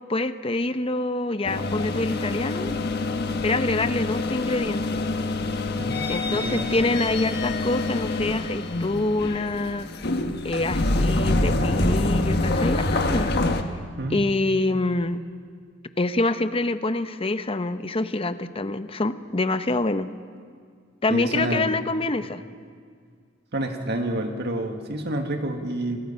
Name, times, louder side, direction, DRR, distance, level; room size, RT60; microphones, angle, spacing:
voice 1, 0.1-2.7 3.4-5.1 6.1-9.9 10.4-13.4 14.1-15.2 16.0-20.1 21.0-22.4, left 2 dB, 30° left, 11 dB, 0.8 m, -26 dB
sound 1, 1.4-13.6, left 2 dB, 55° left, 1.4 m, -26 dB
voice 2, 6.3-6.7 14.0-14.2 21.1-21.8 23.5-26.0, right 1 dB, 55° right, 4 dB, 2.0 m, -28 dB
28.0 x 21.5 x 5.7 m, 2.1 s
head